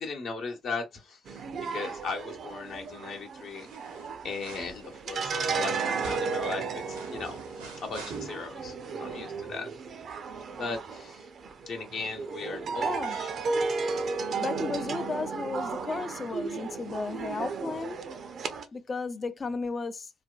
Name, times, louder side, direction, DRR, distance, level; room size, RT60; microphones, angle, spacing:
voice 1, 0.0-1.4 1.7-4.0 4.2-7.4 7.8-9.7 10.5-11.3 11.6-13.3, left 4 dB, 55° left, 1.0 m, -37 dB
sound 1, 1.3-18.6, right 4 dB, 50° right, 0.5 m, -34 dB
sound 2, 2.6-3.1 3.4-8.7 9.0-9.1, right 4 dB, 80° right, 0.8 m, -48 dB
voice 2, 12.8-13.2 14.4-18.0 18.7-20.1, left 4 dB, 35° left, 0.4 m, -34 dB
3.3 x 2.2 x 2.3 m
figure-of-eight pair, 45°, 0 cm